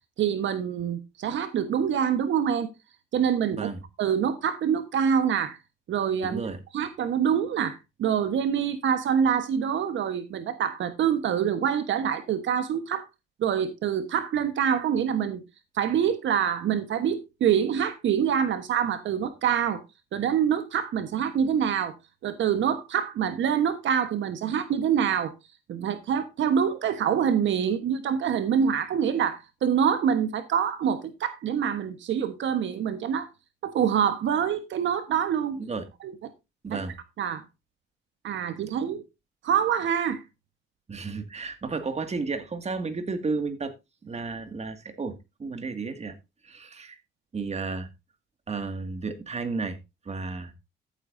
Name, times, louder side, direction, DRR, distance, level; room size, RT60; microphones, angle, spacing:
voice 1, 0.2-2.7 3.1-3.7 4.0-5.6 5.9-6.4 6.7-13.0 13.4-15.4 15.7-19.8 20.1-21.9 22.2-25.3 25.7-33.3 33.6-35.6 36.0-36.1 37.2-37.4 38.2-39.0 39.4-40.2, right 8 dB, 70° right, 1.3 m, -25 dB
voice 2, 3.5-3.8 6.2-6.6 35.6-35.8 36.6-37.0 40.9-43.7 44.0-46.2 46.4-47.0 47.3-47.9 48.5-49.8 50.0-50.5, right 4 dB, 35° right, 2.1 m, -32 dB
14.0 x 8.8 x 2.7 m
cardioid pair, 90°, 20 cm